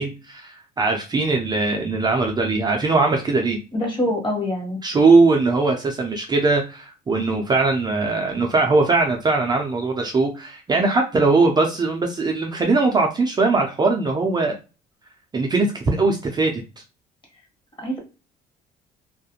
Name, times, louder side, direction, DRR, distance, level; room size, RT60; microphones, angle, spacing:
voice 1, 0.0-3.6 4.8-14.5 15.3-16.6, right 3 dB, 25° right, 1 dB, 0.4 m, -20 dB
voice 2, 3.7-4.8 17.8-18.0, left 1 dB, 30° left, 1 dB, 1.1 m, -24 dB
2.4 x 2.1 x 2.8 m, 0.31 s
cardioid pair, 110°, 17 cm